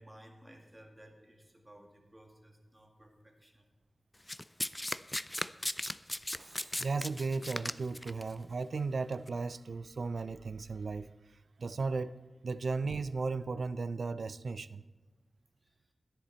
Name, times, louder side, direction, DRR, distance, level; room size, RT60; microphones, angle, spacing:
voice 1, 0.0-3.7 15.6-15.7, right 1 dB, 20° right, 2.2 m, -57 dB
Domestic sounds home sounds, 4.3-8.2 9.1-9.3, left 1 dB, 15° left, 0.4 m, -36 dB
Shatter, 6.4-7.3, right 1 dB, 35° right, 2.6 m, -58 dB
voice 2, 6.8-11.1 11.6-14.8, right 4 dB, 75° right, 0.4 m, -35 dB
14.5 x 10.0 x 4.2 m
wide cardioid pair, 70°, 0 cm